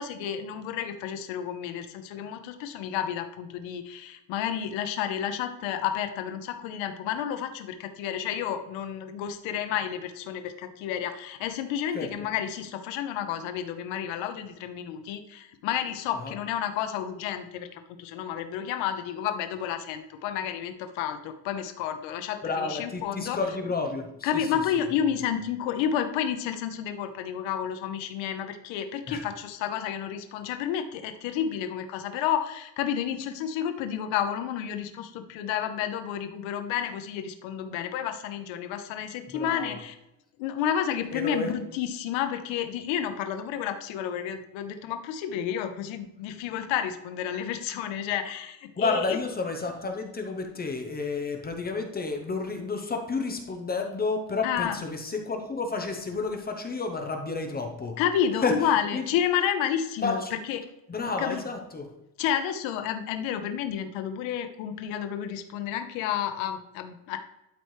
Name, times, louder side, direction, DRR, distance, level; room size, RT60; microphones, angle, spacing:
voice 1, 0.0-23.4 24.2-39.9 40.4-49.2 54.4-54.8 58.0-60.6 61.2-61.4 62.2-67.2, left 9 dB, 90° left, 8 dB, 0.8 m, -30 dB
voice 2, 22.4-24.5 24.8-24.9 29.1-29.2 39.3-39.8 41.1-41.5 48.8-58.0 58.4-58.6 58.9-59.0 60.0-60.3 60.9-62.0, left 3 dB, 20° left, 4 dB, 0.8 m, -31 dB
11.5 x 4.4 x 3.2 m, 0.90 s
cardioid pair, 145°, 45 cm